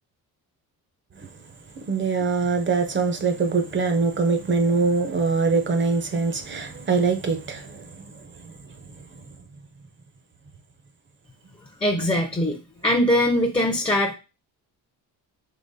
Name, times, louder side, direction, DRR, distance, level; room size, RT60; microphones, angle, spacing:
voice 1, 1.8-8.7, right 4 dB, 30° right, 0.7 m, -23 dB
voice 2, 11.8-14.1, left 1 dB, 15° left, 0.6 m, -22 dB
3.9 x 2.8 x 4.1 m
cardioid pair, 105°, 37 cm